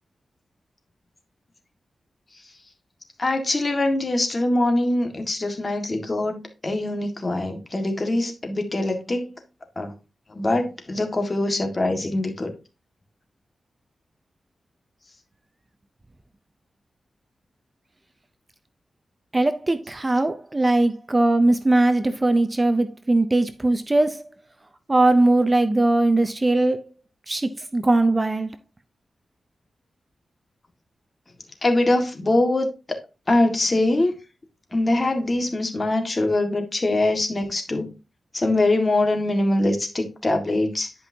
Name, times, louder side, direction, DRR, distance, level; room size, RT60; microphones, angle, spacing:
voice 1, 3.2-9.4 9.8-9.9 10.3-12.5 31.6-32.7 33.3-34.1 34.7-37.9 38.3-40.9, left 2 dB, 35° left, 1.8 m, -23 dB
voice 2, 19.3-24.2 24.9-26.8 27.3-28.5, right 2 dB, 25° right, 0.7 m, -20 dB
11.0 x 5.3 x 2.8 m
wide cardioid pair, 85°, 0 cm